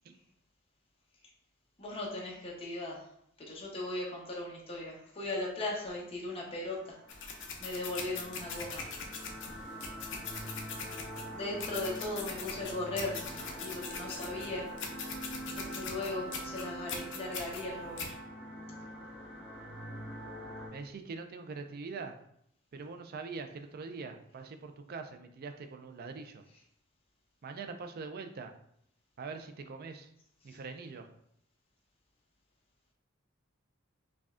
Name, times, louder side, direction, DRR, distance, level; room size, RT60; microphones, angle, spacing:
voice 1, 1.8-3.1 3.4-7.0 7.6-9.0 10.4-10.6 11.3-14.8 15.6-18.1 30.5-30.6, left 2 dB, 30° left, -3 dB, 0.7 m, -38 dB
sound 1, 6.5-20.7, equal, 5° right, 0.9 m, -45 dB
sound 2, 7.1-18.1, left 5 dB, 60° left, 0.5 m, -42 dB
voice 2, 20.7-22.1 22.7-26.4 27.4-28.5 29.2-30.1 30.4-31.1, right 4 dB, 50° right, 7 dB, 0.4 m, -43 dB
4.8 x 2.3 x 2.4 m, 0.71 s
head